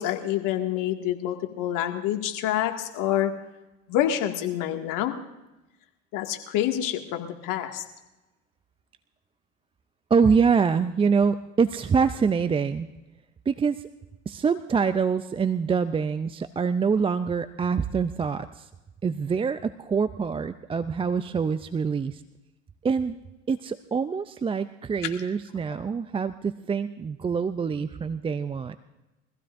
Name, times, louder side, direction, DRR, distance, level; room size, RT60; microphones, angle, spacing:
voice 1, 0.0-3.3 3.9-5.2 6.1-7.8, left 11 dB, 55° left, 4 dB, 2.2 m, -27 dB
voice 2, 10.1-12.9 13.5-13.8 14.3-18.7 19.0-22.2 22.8-23.2 23.5-28.8, right 5 dB, 15° right, 12 dB, 0.4 m, -25 dB
24.0 x 15.5 x 2.6 m, 1.0 s
hypercardioid pair, 90°, 38 cm